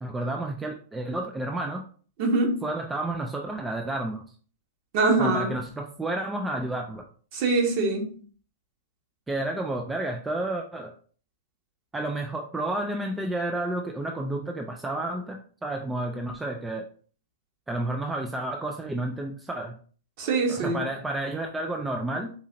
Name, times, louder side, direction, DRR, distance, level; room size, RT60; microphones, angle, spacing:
voice 1, 0.0-1.8 2.6-4.3 5.2-7.0 9.3-10.9 11.9-16.9 17.7-19.7 20.5-22.3, right 2 dB, 10° right, 3 dB, 0.4 m, -31 dB
voice 2, 2.2-2.6 4.9-5.5 7.3-8.1 20.2-20.8, right 3 dB, 50° right, 1 dB, 1.4 m, -23 dB
4.1 x 2.8 x 2.5 m, 0.43 s
hypercardioid pair, 125°, 0 cm